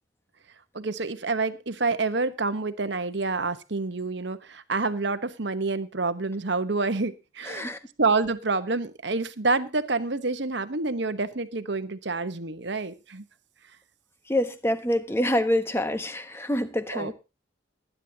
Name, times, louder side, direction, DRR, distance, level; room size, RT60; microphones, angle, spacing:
voice 1, 0.7-7.7 8.0-13.2 16.9-17.1, right 3 dB, 55° right, 11 dB, 1.0 m, -28 dB
voice 2, 7.4-7.8 14.3-17.1, left 1 dB, 10° left, 10 dB, 1.1 m, -26 dB
20.0 x 10.0 x 2.8 m, 0.28 s
head